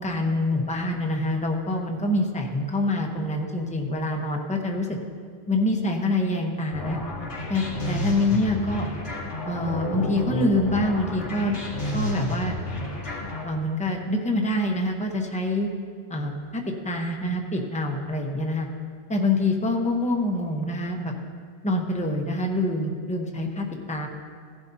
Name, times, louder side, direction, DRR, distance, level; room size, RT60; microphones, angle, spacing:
voice 1, 0.0-5.0 5.5-7.0 7.5-8.8 9.5-11.6 11.9-12.6 13.4-15.7 16.1-18.7 19.1-21.1 21.6-24.1, left 1 dB, 5° left, 1 dB, 0.8 m, -26 dB
sound 1, 6.7-13.4, left 1 dB, 90° left, 2.4 m, -31 dB
17.0 x 11.0 x 2.8 m, 2.2 s
omnidirectional pair, 1.2 m